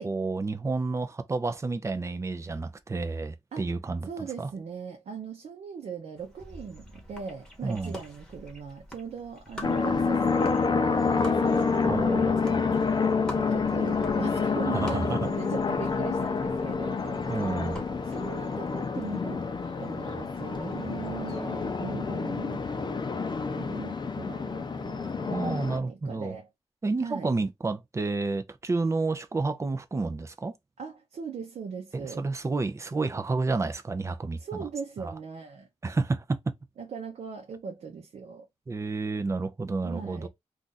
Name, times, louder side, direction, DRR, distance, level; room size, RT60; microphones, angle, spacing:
voice 1, 0.0-4.1 4.4-4.5 7.6-8.0 11.9-12.4 14.7-15.2 17.3-17.8 25.3-26.3 26.8-30.5 31.9-34.4 35.0-35.1 35.8-36.4 38.7-40.3, right 3 dB, 25° right, 0.4 m, -30 dB
voice 2, 4.0-13.0 13.3-17.3 18.0-19.5 19.8-22.7 23.6-26.5 27.0-27.3 30.8-32.3 34.4-35.7 36.8-38.5 39.8-40.3, right 6 dB, 85° right, 0.6 m, -40 dB
sound 1, 6.2-21.4, equal, 5° left, 1.0 m, -47 dB
sound 2, 9.6-25.8, left 4 dB, 40° left, 0.5 m, -28 dB
2.5 x 2.4 x 3.9 m
wide cardioid pair, 115°, 11 cm